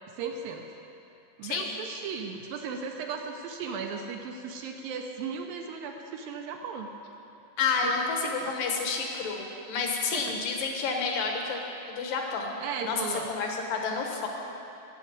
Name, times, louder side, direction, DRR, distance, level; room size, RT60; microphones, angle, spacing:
voice 1, 0.1-0.7 1.4-6.9 7.8-8.6 10.1-10.4 12.6-13.4, right 5 dB, 80° right, 4 dB, 2.2 m, -36 dB
voice 2, 7.6-11.6 11.9-12.5 12.8-14.3, left 4 dB, 65° left, 1 dB, 2.9 m, -30 dB
14.5 x 7.6 x 9.5 m, 2.9 s
omnidirectional pair, 4.7 m